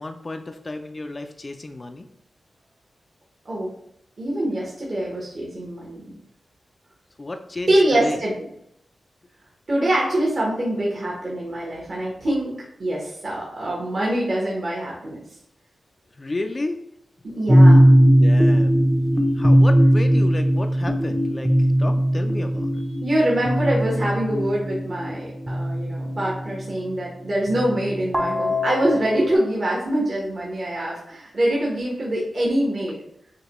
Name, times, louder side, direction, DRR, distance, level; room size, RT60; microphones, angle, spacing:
voice 1, 0.0-2.1 7.2-7.7 8.0-8.2 11.5-11.6 16.2-16.8 18.2-18.8 19.3-22.8, left 2 dB, 35° left, 6 dB, 0.4 m, -32 dB
voice 2, 4.2-6.1 7.7-8.5 9.7-12.5 12.8-15.2 17.2-17.9 23.0-33.0, right 1 dB, 50° right, -5 dB, 1.1 m, -24 dB
sound 1, 17.5-26.6 27.5-29.4, equal, 15° right, 0.6 m, -18 dB
6.4 x 2.2 x 3.0 m, 0.73 s
wide cardioid pair, 90°, 0 cm